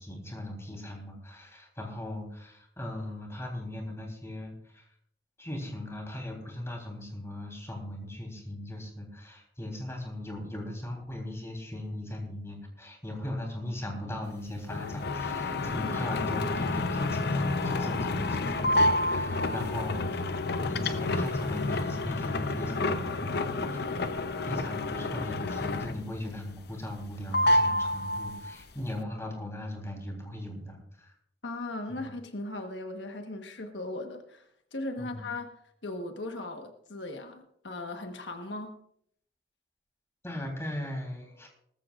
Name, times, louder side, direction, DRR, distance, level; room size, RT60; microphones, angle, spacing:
voice 1, 0.0-4.9 5.4-23.9 24.4-31.1 31.9-32.1 35.0-35.3 40.2-41.5, left 1 dB, 15° left, 2 dB, 3.5 m, -38 dB
sound 1, 14.7-26.2 26.5-27.1 27.3-28.6, left 2 dB, 65° left, 0.7 m, -29 dB
voice 2, 31.4-35.5 35.8-38.8, left 2 dB, 85° left, 5 dB, 1.3 m, -38 dB
19.5 x 14.0 x 2.5 m, 0.69 s
head